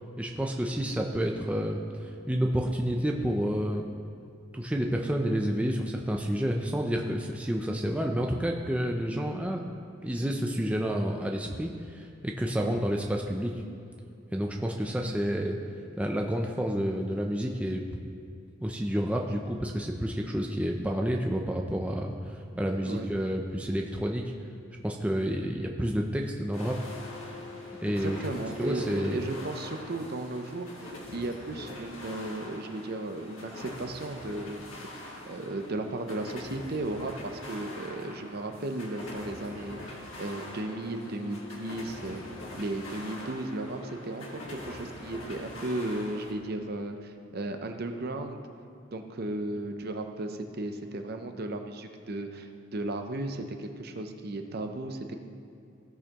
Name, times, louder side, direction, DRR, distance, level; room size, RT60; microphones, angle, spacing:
voice 1, 0.2-3.9 4.5-9.6 10.0-13.6 14.3-15.6 16.0-17.8 18.6-24.3 24.8-26.8 27.8-28.2 28.6-29.2, equal, 5° right, 1 dB, 0.4 m, -29 dB
sound 1, 26.5-46.3, left 2 dB, 75° left, 1.5 m, -43 dB
voice 2, 27.9-34.6 34.9-42.2 42.6-48.4 48.9-55.2, right 2 dB, 50° right, 5 dB, 0.6 m, -35 dB
16.0 x 6.4 x 3.0 m, 2.6 s
head